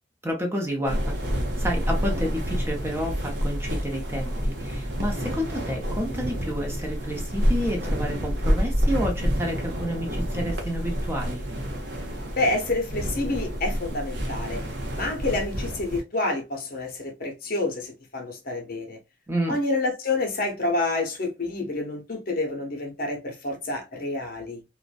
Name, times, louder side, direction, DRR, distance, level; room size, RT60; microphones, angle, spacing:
voice 1, 0.2-1.2 1.6-11.4 19.3-19.6, equal, 15° right, 0.7 m, -30 dB
sound 1, 0.8-16.0, equal, 70° right, 0.7 m, -28 dB
voice 2, 12.4-14.6 15.0-19.0 19.5-24.6, left 2 dB, 55° left, 0.7 m, -28 dB
2.5 x 2.1 x 2.4 m
head